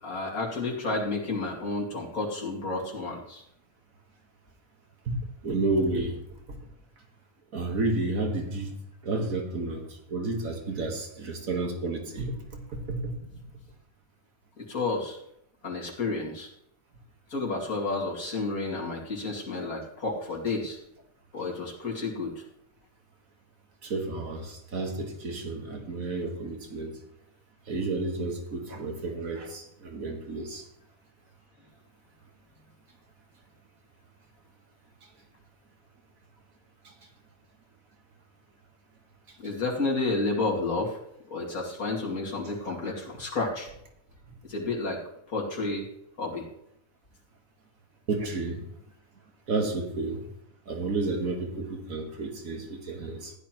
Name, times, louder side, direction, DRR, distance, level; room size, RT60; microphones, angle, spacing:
voice 1, 0.0-3.4 14.6-15.2 15.6-16.5 17.3-20.8 21.3-22.4 39.4-41.0 41.3-43.7 44.4-45.0 45.3-45.9 46.2-46.5, left 3 dB, 85° left, -3 dB, 2.9 m, -31 dB
voice 2, 5.1-6.2 6.5-6.6 7.5-8.7 9.0-13.1 23.8-26.9 27.7-30.7 36.8-36.9 39.3-39.4 48.1-48.7 49.5-50.3 50.7-53.3, right 3 dB, 75° right, 3 dB, 1.9 m, -31 dB
15.0 x 11.0 x 3.0 m, 0.76 s
omnidirectional pair, 1.5 m